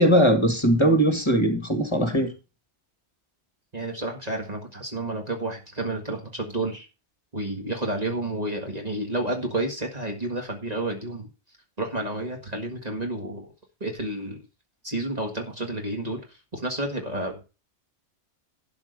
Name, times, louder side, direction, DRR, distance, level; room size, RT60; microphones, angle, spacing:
voice 1, 0.0-2.3, equal, 25° left, 5 dB, 1.9 m, -20 dB
voice 2, 3.7-6.9 7.3-11.3 11.8-13.5 13.8-14.4 14.8-17.4, right 2 dB, 35° right, 2 dB, 1.9 m, -30 dB
12.0 x 4.9 x 6.7 m, 0.31 s
omnidirectional pair, 1.2 m